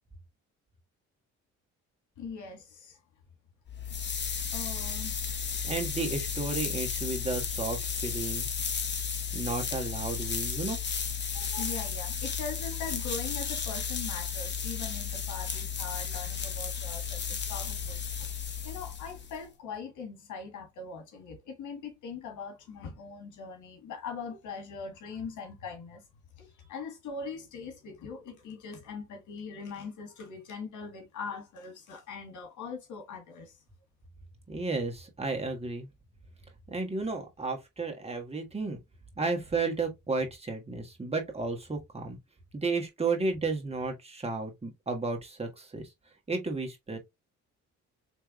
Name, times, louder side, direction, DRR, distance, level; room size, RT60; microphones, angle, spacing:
voice 1, 2.2-3.0 4.5-5.4 11.3-18.3 18.6-26.0 26.4-33.6, left 5 dB, 75° left, 1.7 m, -41 dB
sound 1, 3.7-19.4, left 7 dB, 35° left, 1.0 m, -34 dB
voice 2, 5.6-8.5 9.3-10.8 34.5-35.9 36.7-38.8 39.2-42.2 42.5-45.9 46.3-47.0, right 3 dB, 20° right, 1.4 m, -33 dB
4.6 x 3.4 x 2.5 m
cardioid pair, 90°, 30 cm